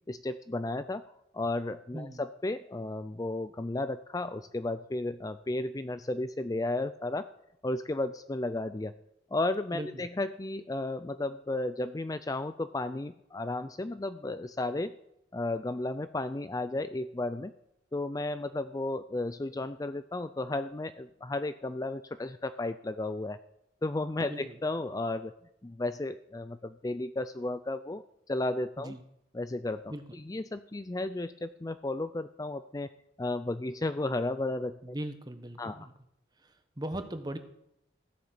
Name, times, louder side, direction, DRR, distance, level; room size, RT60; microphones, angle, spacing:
voice 1, 0.1-1.0 1.3-7.3 7.6-8.9 9.3-14.9 15.3-17.5 17.9-23.4 23.8-25.3 25.6-28.9 29.3-32.9 33.2-34.9 35.6-35.9, left 2 dB, 20° left, 12 dB, 0.4 m, -33 dB
voice 2, 1.9-2.2 9.7-10.1 24.2-24.6 28.8-29.0 29.9-30.0 34.8-35.9 36.4-37.4, right 1 dB, 20° right, 8 dB, 1.3 m, -39 dB
16.0 x 7.1 x 8.3 m, 0.79 s
head